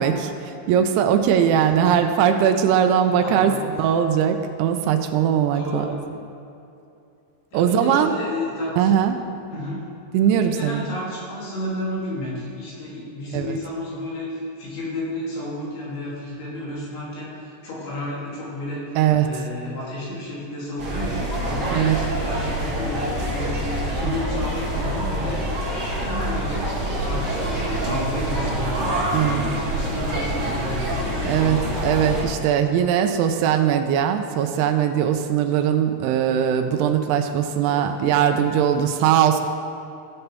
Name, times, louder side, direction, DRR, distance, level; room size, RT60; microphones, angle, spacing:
voice 1, 0.0-3.5 3.8-5.9 7.5-8.1 8.8-9.2 10.1-10.8 13.3-13.5 19.0-19.3 21.8-22.0 29.1-29.4 31.3-31.6 31.8-39.4, right 9 dB, 90° right, 6 dB, 2.6 m, -20 dB
voice 2, 1.4-2.0 3.0-3.9 5.5-6.0 7.5-8.9 9.5-9.8 10.3-19.0 19.2-25.4 25.9-31.7 37.7-37.8, left 1 dB, 80° left, -8 dB, 4.7 m, -32 dB
sound 1, 20.8-32.2, right 1 dB, 40° right, 1.5 m, -26 dB
14.5 x 6.9 x 3.4 m, 2.7 s
omnidirectional pair, 4.6 m